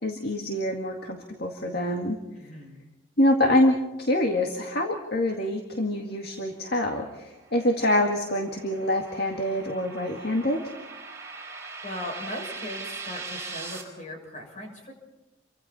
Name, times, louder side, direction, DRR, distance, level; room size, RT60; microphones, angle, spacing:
voice 1, 0.0-2.2 2.4-2.5 3.2-10.6, left 1 dB, 55° left, 3 dB, 2.0 m, -25 dB
voice 2, 2.4-2.8 11.8-14.9, left 1 dB, 40° left, 2 dB, 6.5 m, -38 dB
sound 1, 7.0-13.8, right 4 dB, 15° right, 4.5 m, -41 dB
30.0 x 24.5 x 4.4 m, 1.0 s
head